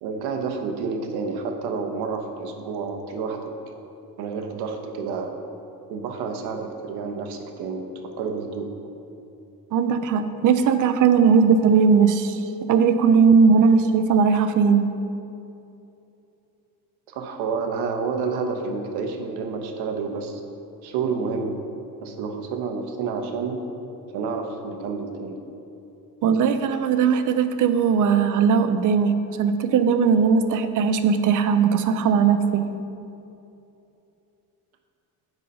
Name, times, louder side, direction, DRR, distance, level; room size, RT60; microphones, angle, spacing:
voice 1, 0.0-3.4 4.2-5.3 5.9-7.9 8.2-8.7 17.1-20.4 20.8-21.6 22.0-23.6 24.1-25.4, right 5 dB, 85° right, 5 dB, 1.0 m, -29 dB
voice 2, 9.7-12.4 12.7-14.9 26.2-32.7, right 6 dB, 55° right, 10 dB, 0.6 m, -19 dB
8.0 x 5.6 x 5.4 m, 2.8 s
cardioid pair, 145°, 38 cm